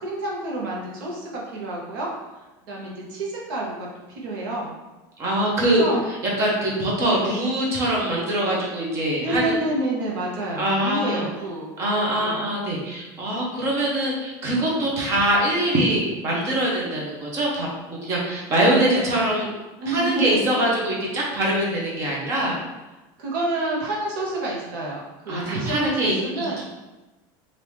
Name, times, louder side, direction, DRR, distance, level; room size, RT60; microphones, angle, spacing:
voice 1, 0.0-4.8 5.6-6.0 9.2-11.7 12.1-12.4 18.6-19.0 19.8-20.4 23.2-26.6, right 2 dB, 75° right, -3 dB, 1.0 m, -29 dB
voice 2, 5.2-5.8 6.4-9.5 10.6-11.2 11.8-19.5 19.9-22.5 25.3-26.6, right 1 dB, 25° right, -3 dB, 0.7 m, -23 dB
3.5 x 2.6 x 3.1 m, 1.1 s
cardioid pair, 180°, 11 cm